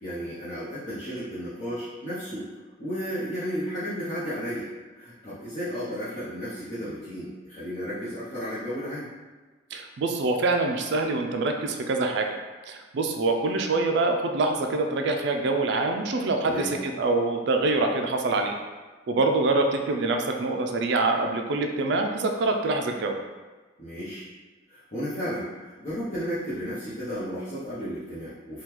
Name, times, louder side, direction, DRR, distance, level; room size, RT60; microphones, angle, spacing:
voice 1, 0.0-2.5 2.8-4.7 4.9-9.1 16.4-16.7 23.8-24.2 24.7-28.6, equal, 40° left, -13 dB, 0.7 m, -33 dB
voice 2, 9.7-12.3 12.7-18.6 19.1-23.2, right 3 dB, 60° right, 4 dB, 0.3 m, -25 dB
3.5 x 2.3 x 3.0 m, 1.3 s
head